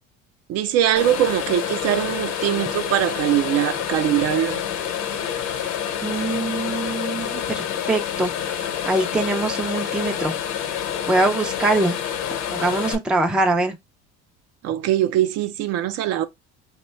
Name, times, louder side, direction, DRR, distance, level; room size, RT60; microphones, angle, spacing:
voice 1, 0.5-4.6 14.6-16.3, right 12 dB, 55° right, 0.5 m, -22 dB
sound 1, 1.0-13.0, left 9 dB, 75° left, 0.9 m, -28 dB
voice 2, 6.0-10.3 11.1-12.0 12.5-13.7, right 2 dB, 5° right, 0.4 m, -23 dB
3.0 x 2.2 x 4.2 m
cardioid pair, 125°, 30 cm